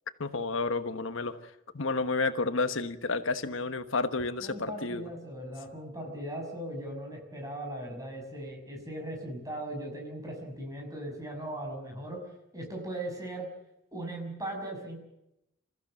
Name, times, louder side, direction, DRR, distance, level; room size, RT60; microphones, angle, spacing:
voice 1, 0.2-5.1, left 3 dB, 80° left, 10 dB, 1.2 m, -31 dB
voice 2, 4.4-12.2 12.5-13.5 13.9-15.0, right 1 dB, 15° right, 1 dB, 6.0 m, -38 dB
26.5 x 15.0 x 7.5 m, 0.84 s
head